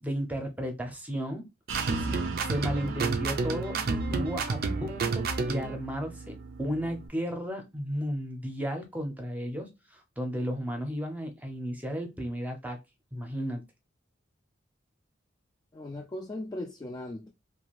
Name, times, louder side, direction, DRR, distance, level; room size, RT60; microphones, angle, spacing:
voice 1, 0.0-1.4 2.0-12.8 13.1-13.6, equal, 10° right, 0.6 m, -34 dB
sound 1, 1.7-5.8, right 4 dB, 50° right, 0.4 m, -30 dB
sound 2, 1.7-7.1, right 4 dB, 90° right, 0.6 m, -40 dB
voice 2, 15.7-17.3, left 1 dB, 20° left, 0.3 m, -38 dB
2.6 x 2.3 x 3.0 m
head